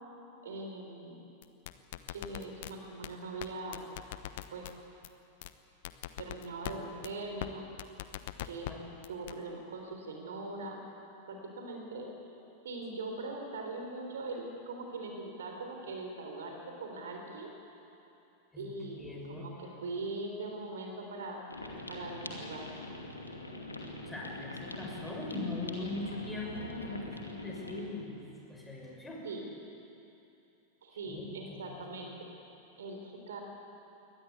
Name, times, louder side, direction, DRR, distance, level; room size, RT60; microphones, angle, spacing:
voice 1, 0.4-1.2 2.1-3.8 4.5-4.7 6.2-7.7 8.4-10.8 11.3-12.1 12.6-17.5 18.6-21.4 21.9-22.7 29.2-29.4 30.8-32.3 32.8-33.4, right 2 dB, 65° right, 2 dB, 3.7 m, -41 dB
sound 1, 1.4-2.7 3.0-3.1 3.4-3.5 3.7-4.7 5.0-5.1 5.4-5.5 5.8-6.7 7.0-7.1 7.4-7.5 7.8-8.7 9.0-9.3, left 15 dB, 55° left, 1.0 m, -40 dB
voice 2, 18.5-19.5 24.0-28.2 28.5-29.2 31.1-31.8, left 2 dB, 10° left, -2 dB, 6.2 m, -40 dB
sound 2, 21.5-27.9, left 2 dB, 80° left, 2.5 m, -43 dB
23.5 x 19.0 x 8.4 m, 2.8 s
figure-of-eight pair, 90°, 0 cm